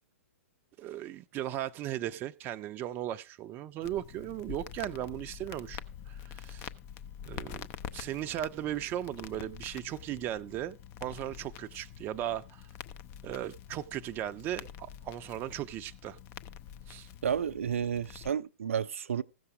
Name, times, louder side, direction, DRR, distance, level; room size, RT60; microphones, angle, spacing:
voice 1, 0.8-6.7 7.3-12.6 13.2-16.2 16.9-17.1, right 12 dB, 25° right, 0.6 m, -37 dB
Crackle, 3.8-18.3, left 9 dB, 30° left, 0.6 m, -46 dB
voice 2, 17.2-19.2, right 8 dB, 65° right, 0.5 m, -31 dB
15.5 x 6.9 x 4.9 m
figure-of-eight pair, 115°, 8 cm